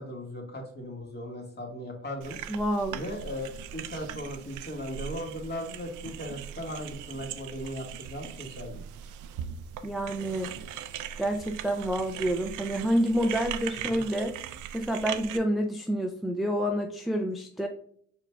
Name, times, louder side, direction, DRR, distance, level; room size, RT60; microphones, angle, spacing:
voice 1, 0.0-2.4 2.9-8.8 13.9-14.0, equal, 35° left, 0 dB, 1.7 m, -38 dB
sound 1, 2.2-15.4, right 9 dB, 85° right, 0.5 m, -40 dB
voice 2, 2.5-3.0 9.8-10.6 11.2-14.4 14.7-17.7, equal, ahead, 2 dB, 0.4 m, -28 dB
4.8 x 4.5 x 2.3 m, 0.62 s
cardioid pair, 90°, 30 cm